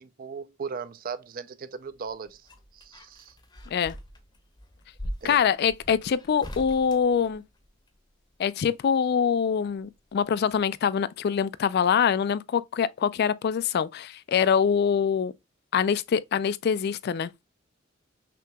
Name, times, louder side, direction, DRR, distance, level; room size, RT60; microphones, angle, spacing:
voice 1, 0.0-3.4 5.2-5.4, right 5 dB, 45° right, 0.4 m, -38 dB
sound 1, 1.9-8.0 9.4-10.2 10.5-10.6, equal, 20° left, 0.7 m, -42 dB
voice 2, 5.2-7.4 8.4-15.3 15.7-17.3, left 7 dB, 55° left, 0.3 m, -24 dB
5.9 x 2.9 x 2.2 m
head